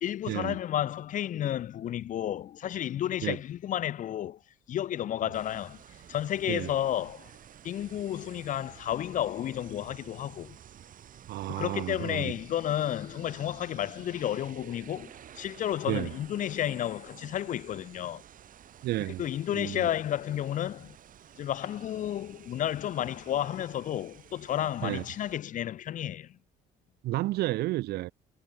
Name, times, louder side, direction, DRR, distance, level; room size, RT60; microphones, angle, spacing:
voice 1, 0.0-4.4 4.7-5.8 6.1-7.3 7.6-10.6 11.5-15.1 15.4-18.2 19.1-21.0 21.4-26.3, left 11 dB, 50° left, 0.7 m, -32 dB
sound 1, 5.3-25.3, right 10 dB, 55° right, 4.7 m, -52 dB
voice 2, 11.3-12.3 15.9-16.1 18.8-19.2 19.5-19.9 24.8-25.0 27.0-28.1, right 17 dB, 75° right, 0.7 m, -31 dB
cardioid pair, 110°, 17 cm